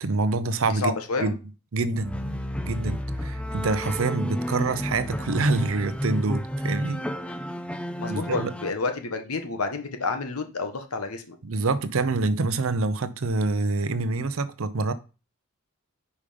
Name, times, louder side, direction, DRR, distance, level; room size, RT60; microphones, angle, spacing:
voice 1, 0.0-0.9 1.2-1.3 1.7-2.2 2.6-7.0 8.1-8.5 11.4-14.9, right 3 dB, 65° right, 0.6 m, -26 dB
voice 2, 0.7-1.4 8.0-11.4, left 3 dB, 85° left, 1.1 m, -29 dB
sound 1, 1.9-8.7, equal, 5° left, 0.4 m, -31 dB
5.3 x 5.0 x 5.0 m
head